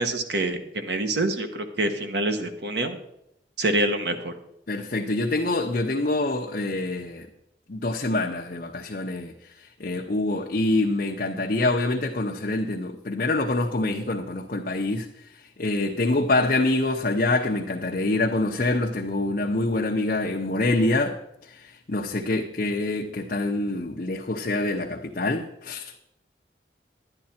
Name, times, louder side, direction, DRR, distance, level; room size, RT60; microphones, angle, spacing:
voice 1, 0.0-3.0 3.6-4.3, right 2 dB, 75° right, 1.2 m, -26 dB
voice 2, 4.7-7.3 7.7-9.3 9.6-15.1 15.3-25.9, left 2 dB, 50° left, 0.8 m, -26 dB
11.5 x 9.9 x 4.3 m
head